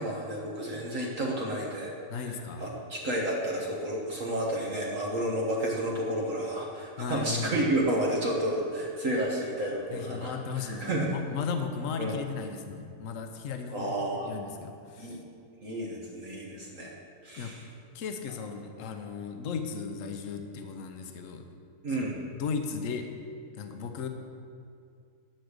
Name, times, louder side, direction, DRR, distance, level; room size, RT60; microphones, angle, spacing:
voice 1, 0.0-11.2 12.0-12.2 13.7-14.3 15.0-15.2 15.6-16.9 17.2-17.6 21.8-22.1, right 1 dB, 60° right, -2 dB, 1.6 m, -31 dB
voice 2, 2.1-2.6 7.0-7.5 9.9-13.9 14.2-15.2 17.4-17.5 17.9-21.4 21.9-23.1 23.6-24.1, left 5 dB, 65° left, 6 dB, 1.2 m, -36 dB
10.5 x 6.6 x 6.5 m, 2.4 s
omnidirectional pair, 1.6 m